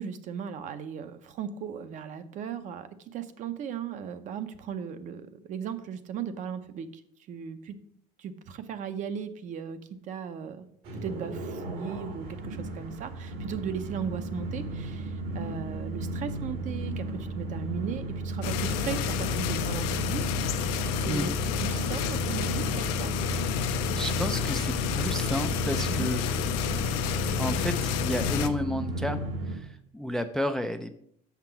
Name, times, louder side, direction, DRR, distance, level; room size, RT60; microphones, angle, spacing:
voice 1, 0.0-6.9 7.3-7.8 8.2-10.7 10.9-21.3 21.6-23.1 25.9-26.1, right 7 dB, 45° right, 11 dB, 0.7 m, -37 dB
sound 1, 10.8-29.6, right 1 dB, 70° right, 2.0 m, -34 dB
sound 2, 18.4-28.5, left 9 dB, 85° left, 0.7 m, -30 dB
voice 2, 21.1-21.4 23.8-26.2 27.4-30.9, equal, 5° left, 9 dB, 0.3 m, -32 dB
6.6 x 5.9 x 5.8 m, 0.68 s
cardioid pair, 145°, 17 cm